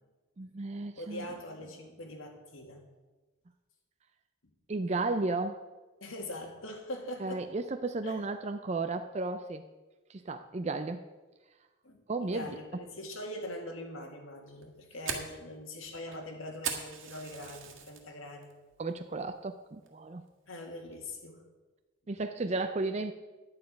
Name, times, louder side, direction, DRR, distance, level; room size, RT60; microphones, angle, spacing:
voice 1, 0.4-1.3 4.7-5.6 7.2-9.6 10.1-11.0 12.1-12.5 18.8-20.2 22.1-23.1, right 3 dB, 35° right, 8 dB, 0.4 m, -33 dB
voice 2, 1.0-2.8 6.0-7.5 8.0-8.2 11.8-18.5 20.5-21.4, left 1 dB, 85° left, 3 dB, 2.0 m, -42 dB
Fire, 14.5-18.0 18.4-18.8 19.2-19.3 19.9-20.2, right 6 dB, 75° right, 1.7 m, -39 dB
10.5 x 9.2 x 5.2 m, 1.2 s
head